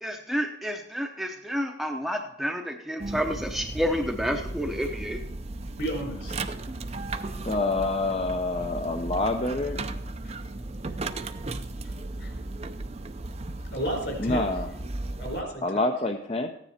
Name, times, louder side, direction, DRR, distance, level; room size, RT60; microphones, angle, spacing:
voice 1, 0.0-5.2, equal, ahead, 2 dB, 0.8 m, -30 dB
sound 1, 3.0-15.4, right 2 dB, 30° right, 0.6 m, -35 dB
voice 2, 5.8-6.4 7.4-7.5 10.2-10.3 12.2-12.3 13.7-14.4 15.2-15.8, equal, 65° left, 2 dB, 4.4 m, -32 dB
voice 3, 7.4-9.8 14.2-14.7 15.6-16.5, left 2 dB, 30° left, 4 dB, 0.6 m, -27 dB
15.0 x 10.0 x 4.3 m, 0.80 s
head